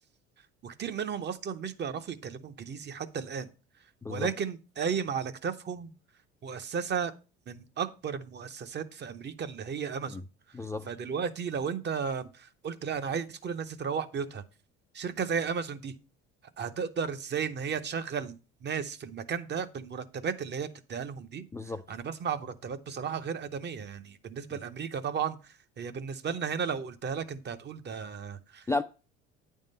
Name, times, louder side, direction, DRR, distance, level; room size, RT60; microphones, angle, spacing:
voice 1, 0.6-3.5 4.1-5.9 6.4-7.1 7.5-10.2 10.9-14.4 14.9-16.0 16.6-21.5 21.9-28.7, right 6 dB, 35° right, 0.7 m, -34 dB
voice 2, 10.5-10.9 21.5-21.8 28.7-28.8, left 3 dB, 10° left, 0.3 m, -32 dB
9.0 x 3.6 x 5.3 m
supercardioid pair, 80°, 29 cm